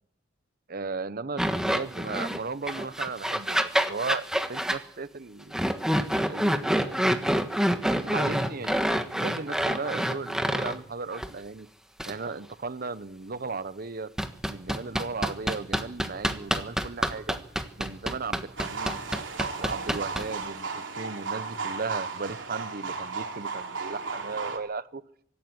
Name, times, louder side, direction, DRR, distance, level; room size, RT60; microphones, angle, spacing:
voice 1, 0.7-5.6 6.3-7.0 8.0-11.7 12.1-14.1 14.5-17.4 17.8-19.0 19.6-25.0, right 4 dB, 50° right, 15 dB, 0.9 m, -36 dB
sound 1, 1.4-2.4 2.7-4.8 5.5-10.8 11.1-11.3 12.0-12.1 14.2-20.4, equal, 5° right, 1.4 m, -27 dB
sound 2, 18.6-24.6, right 4 dB, 90° right, 3.3 m, -35 dB
24.5 x 14.0 x 9.7 m, 0.71 s
head